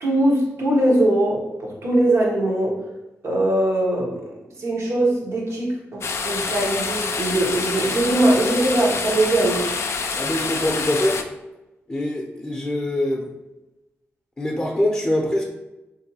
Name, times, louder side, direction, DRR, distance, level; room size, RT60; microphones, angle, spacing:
voice 1, 0.0-2.8 3.2-4.2 4.6-9.6, right 1 dB, 70° right, -3 dB, 1.0 m, -21 dB
sound 1, 6.0-11.2, left 4 dB, 65° left, 0.3 m, -27 dB
voice 2, 10.1-11.2 11.9-13.3 14.4-15.4, left 1 dB, 20° left, -1 dB, 0.6 m, -23 dB
3.4 x 2.6 x 2.8 m, 0.99 s
cardioid pair, 55°, 5 cm